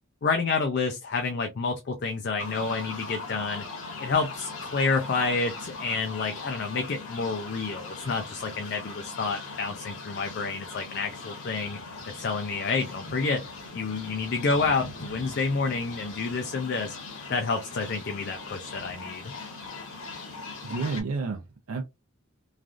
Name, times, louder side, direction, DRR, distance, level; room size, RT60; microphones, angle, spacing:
voice 1, 0.2-3.6 4.0-11.8 12.1-13.4 13.7-17.0 17.3-19.3, left 4 dB, 50° left, 0.4 m, -29 dB
sound 1, 2.4-21.0, left 3 dB, 85° left, 1.2 m, -40 dB
voice 2, 20.6-21.8, right 4 dB, 90° right, 0.5 m, -31 dB
3.2 x 2.4 x 2.4 m
head